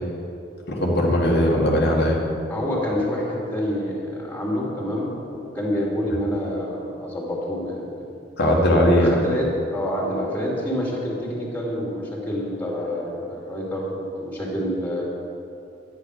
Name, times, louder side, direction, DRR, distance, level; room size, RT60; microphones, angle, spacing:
voice 1, 0.7-2.2 8.4-9.1, equal, 60° left, -3 dB, 1.7 m, -19 dB
voice 2, 2.5-7.9 8.9-15.0, equal, 10° left, -3 dB, 2.7 m, -27 dB
12.0 x 10.0 x 6.6 m, 2.8 s
head